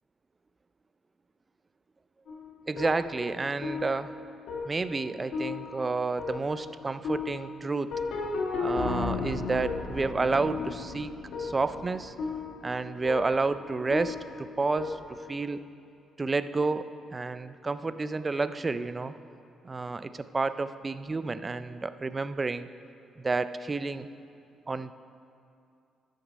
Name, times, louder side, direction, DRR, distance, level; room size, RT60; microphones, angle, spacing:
sound 1, 2.3-15.4, left 4 dB, 75° left, 1.7 m, -35 dB
voice 1, 2.7-4.1 4.7-7.9 8.6-11.1 11.4-12.1 12.6-15.0 15.3-15.6 16.2-19.1 19.6-22.7 23.2-24.1 24.7-24.9, right 3 dB, 25° right, 13 dB, 0.4 m, -30 dB
12.0 x 6.4 x 5.2 m, 2.5 s
cardioid pair, 90°, 0 cm